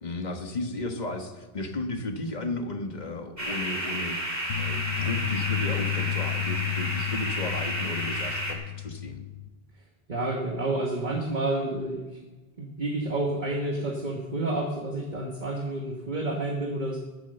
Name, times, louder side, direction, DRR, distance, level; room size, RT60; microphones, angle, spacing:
voice 1, 0.0-9.2, left 2 dB, 45° left, 4 dB, 1.4 m, -34 dB
sound 1, 3.4-8.5, right 1 dB, 15° right, 2.3 m, -31 dB
sound 2, 4.5-9.5, left 16 dB, 65° left, 0.8 m, -32 dB
voice 2, 10.1-12.2 12.6-17.0, right 2 dB, 45° right, 1 dB, 1.5 m, -29 dB
15.5 x 7.5 x 6.7 m, 1.2 s
omnidirectional pair, 1.1 m